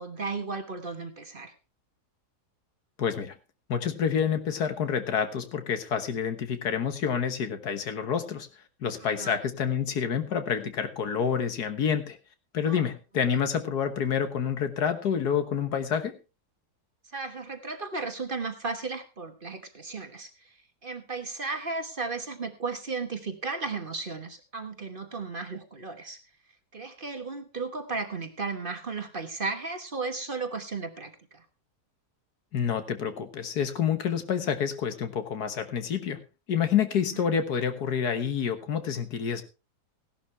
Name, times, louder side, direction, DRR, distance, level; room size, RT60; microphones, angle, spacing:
voice 1, 0.0-1.5 9.0-9.3 12.6-12.9 13.3-13.4 17.1-20.6 20.8-26.2 26.7-31.4 37.1-37.3, right 4 dB, 35° right, 7 dB, 1.3 m, -35 dB
voice 2, 3.0-3.3 3.7-8.5 8.8-12.2 12.5-16.1 32.5-36.2 36.5-39.4, left 7 dB, 80° left, 9 dB, 1.8 m, -28 dB
16.5 x 11.5 x 3.2 m, 0.29 s
omnidirectional pair, 1.7 m